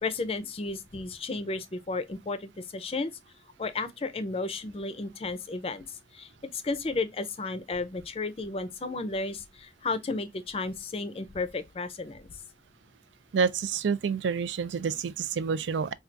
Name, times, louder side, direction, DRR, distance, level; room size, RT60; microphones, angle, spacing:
voice 1, 0.0-3.1 3.6-5.8 6.1-12.3, left 3 dB, 30° left, 0.4 m, -33 dB
voice 2, 13.3-15.9, right 6 dB, 90° right, 0.4 m, -28 dB
4.4 x 2.3 x 2.5 m
head